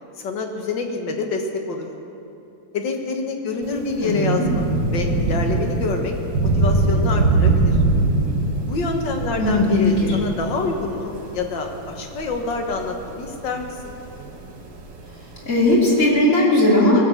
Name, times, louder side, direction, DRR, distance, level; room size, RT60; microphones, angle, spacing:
voice 1, 0.2-1.9 2.7-4.7 4.9-6.1 6.5-7.8 8.7-14.0, left 3 dB, 75° left, 3 dB, 2.1 m, -26 dB
Thunder / Rain, 3.6-16.0, right 3 dB, 80° right, 2.2 m, -23 dB
voice 2, 4.0-4.4 9.4-10.1 15.5-17.0, left 1 dB, 40° left, -4 dB, 3.3 m, -17 dB
20.0 x 8.2 x 7.2 m, 2.9 s
omnidirectional pair, 2.0 m